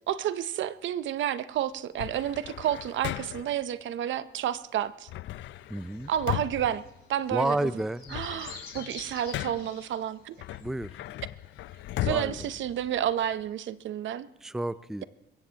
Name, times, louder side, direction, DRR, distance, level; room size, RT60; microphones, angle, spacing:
voice 1, 0.1-5.1 6.1-6.8 7.1-7.7 8.1-10.4 12.0-14.3, right 11 dB, 70° right, 15 dB, 0.7 m, -30 dB
sound 1, 2.0-3.6 5.1-7.5 7.9-9.8 10.4-13.4, left 15 dB, 70° left, 0.4 m, -37 dB
sound 2, 5.4-13.0 13.3-13.4, left 5 dB, 55° left, 4.3 m, -50 dB
voice 2, 5.7-6.1 7.3-8.2 10.6-10.9 12.0-12.3 14.4-15.0, right 1 dB, ahead, 15 dB, 0.4 m, -30 dB
21.5 x 16.5 x 2.9 m, 0.90 s
cardioid pair, 90°, 20 cm